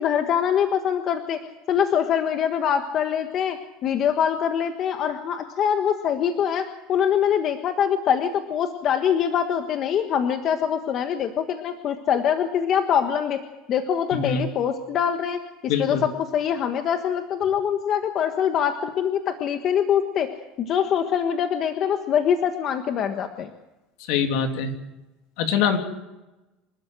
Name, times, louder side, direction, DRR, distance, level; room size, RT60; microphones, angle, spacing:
voice 1, 0.0-1.4 1.7-3.6 3.8-13.4 13.7-20.3 20.6-23.5, left 8 dB, 40° left, 7 dB, 1.4 m, -24 dB
voice 2, 15.7-16.0 24.1-24.7 25.4-25.8, left 7 dB, 65° left, 5 dB, 2.9 m, -23 dB
27.5 x 12.5 x 7.7 m, 1.0 s
cardioid pair, 145°, 0 cm